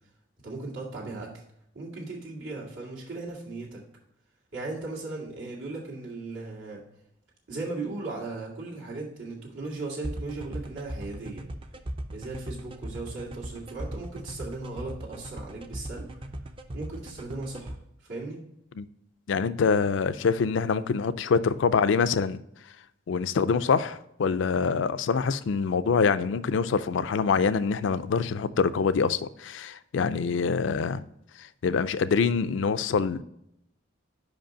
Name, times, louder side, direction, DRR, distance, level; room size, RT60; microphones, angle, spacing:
voice 1, 0.4-1.3 1.7-3.8 4.5-6.8 7.5-11.5 12.1-16.1 16.7-17.8 18.1-18.4, right 3 dB, 80° right, 2.1 m, -37 dB
sound 1, 10.0-17.7, right 1 dB, 25° right, 0.5 m, -37 dB
voice 2, 19.3-22.4 23.1-31.0 31.6-33.2, left 5 dB, 70° left, 0.4 m, -25 dB
5.3 x 5.2 x 5.0 m
head